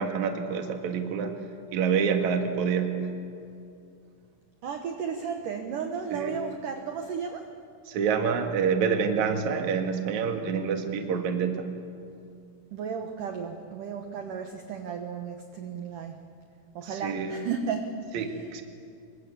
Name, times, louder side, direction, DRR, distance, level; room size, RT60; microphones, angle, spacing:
voice 1, 0.0-1.4 1.7-3.0 6.1-6.3 7.9-11.7 16.8-17.4 18.1-18.6, right 6 dB, 55° right, 5 dB, 2.3 m, -27 dB
voice 2, 4.6-7.5 12.7-16.2 16.8-18.0, right 6 dB, 85° right, 5 dB, 1.8 m, -34 dB
26.0 x 23.5 x 8.6 m, 2.5 s
omnidirectional pair, 5.8 m